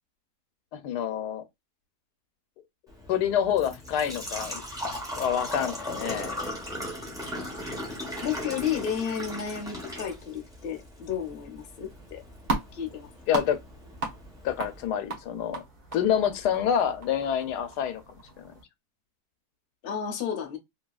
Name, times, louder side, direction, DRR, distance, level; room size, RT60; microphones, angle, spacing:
voice 1, 0.7-1.4 3.1-4.6 5.1-6.4 13.3-13.6 14.4-15.6 15.9-18.0 18.4-18.5, left 9 dB, 85° left, 1.2 m, -27 dB
Engine / Trickle dribble / Fill (with liquid), 2.9-14.9, left 1 dB, 5° right, 0.7 m, -38 dB
voice 2, 8.2-12.2 12.7-13.1 19.8-20.6, left 8 dB, 45° left, 0.8 m, -32 dB
sound 1, 11.9-18.6, right 3 dB, 40° right, 1.0 m, -37 dB
2.9 x 2.8 x 2.3 m
omnidirectional pair, 1.7 m